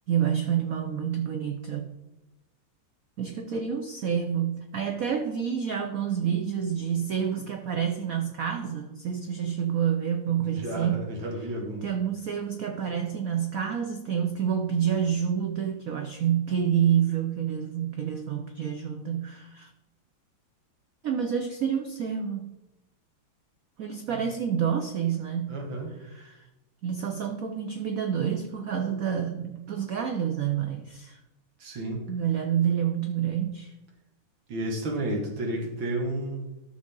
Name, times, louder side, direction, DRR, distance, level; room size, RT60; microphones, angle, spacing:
voice 1, 0.1-2.0 3.2-11.1 11.8-19.7 21.0-22.5 23.8-25.6 26.0-26.5 26.8-31.2 32.1-33.7, right 8 dB, 85° right, 5 dB, 0.7 m, -28 dB
voice 2, 10.4-11.8 24.1-24.2 25.5-25.9 31.6-32.1 34.5-36.5, right 1 dB, 60° right, 0 dB, 2.4 m, -32 dB
13.5 x 6.3 x 3.8 m, 0.97 s
omnidirectional pair, 2.4 m